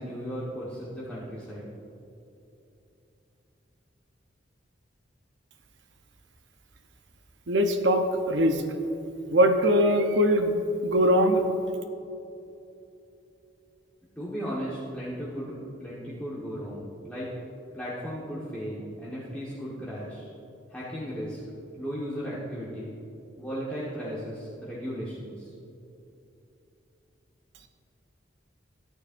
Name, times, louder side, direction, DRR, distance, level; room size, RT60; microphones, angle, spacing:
voice 1, 0.0-1.7 14.2-17.3 17.7-20.3 20.7-21.4 21.8-22.9 23.4-25.5, equal, 5° left, -9 dB, 1.3 m, -36 dB
voice 2, 7.5-8.6 9.3-11.4, equal, 70° right, 5 dB, 0.8 m, -22 dB
13.5 x 9.4 x 2.6 m, 2.9 s
head